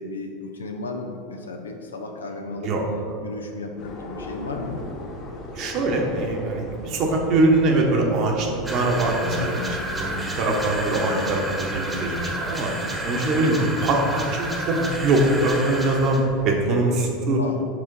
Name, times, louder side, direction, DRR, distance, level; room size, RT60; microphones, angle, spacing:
voice 1, 0.0-2.7 3.2-4.8 9.4-9.8 17.4-17.6, left 3 dB, 85° left, 3 dB, 0.5 m, -34 dB
voice 2, 2.3-2.8 5.5-9.5 9.9-12.7 13.0-17.4, right 2 dB, 50° right, 1 dB, 1.2 m, -22 dB
sound 1, 3.8-16.6, left 2 dB, 45° left, 1.0 m, -38 dB
sound 2, 8.7-16.3, right 1 dB, 15° right, 1.1 m, -31 dB
6.6 x 3.6 x 5.4 m, 2.5 s
hypercardioid pair, 85°, 0 cm